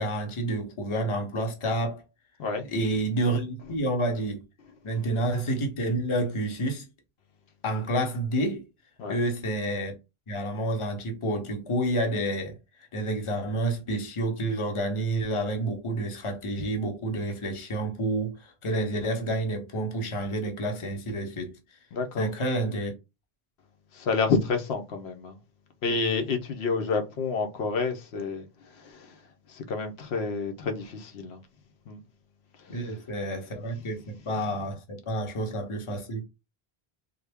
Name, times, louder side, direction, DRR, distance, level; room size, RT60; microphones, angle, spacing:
voice 1, 0.0-2.0 2.7-4.4 4.8-6.9 7.6-8.7 9.1-9.9 10.3-12.6 12.9-21.6 22.2-22.9 32.7-36.2, right 1 dB, 35° left, 0.7 m, -29 dB
voice 2, 21.9-22.3 23.9-25.4 25.8-28.4 28.7-29.2 29.5-31.4 31.9-32.0 32.6-32.8, left 4 dB, 85° left, 0.9 m, -29 dB
3.3 x 2.2 x 3.4 m
omnidirectional pair, 1.0 m